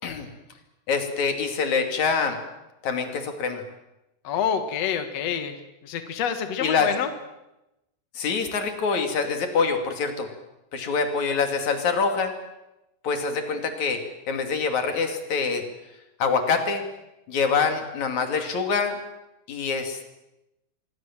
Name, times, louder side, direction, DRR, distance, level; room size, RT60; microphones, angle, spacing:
voice 1, 0.9-2.4 2.8-3.6 6.6-6.9 8.1-10.3 10.7-12.3 13.0-14.0 14.3-15.6 16.2-16.8 17.3-19.0 19.5-20.1, left 5 dB, 45° left, 6 dB, 3.3 m, -25 dB
voice 2, 4.2-5.6 5.8-7.1, left 8 dB, 80° left, 8 dB, 1.4 m, -27 dB
26.5 x 22.0 x 7.5 m, 0.94 s
omnidirectional pair, 5.8 m